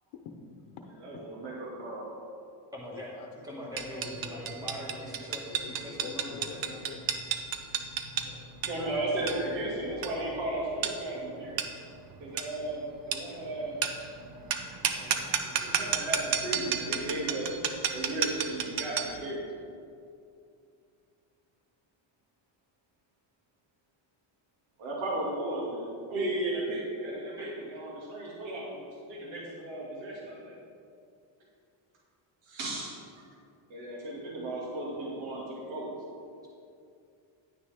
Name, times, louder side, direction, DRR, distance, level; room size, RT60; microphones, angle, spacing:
voice 1, 0.4-1.3 2.9-4.8 5.5-7.1, left 6 dB, 90° left, 2 dB, 0.9 m, -47 dB
voice 2, 1.0-2.0 8.2-8.4 8.6-11.6 12.2-14.1 14.9-15.2 15.6-17.5 17.9-19.5 24.8-28.8 29.1-30.5 32.4-33.0 33.7-35.9, right 1 dB, 75° right, -5 dB, 2.4 m, -35 dB
voice 3, 2.7-3.2 3.4-6.7 27.4-27.5, equal, 10° right, -3 dB, 1.9 m, -42 dB
sound 1, 3.8-19.2, right 7 dB, 50° right, 0.8 m, -33 dB
10.5 x 9.4 x 3.6 m, 2.5 s
cardioid pair, 135°, 46 cm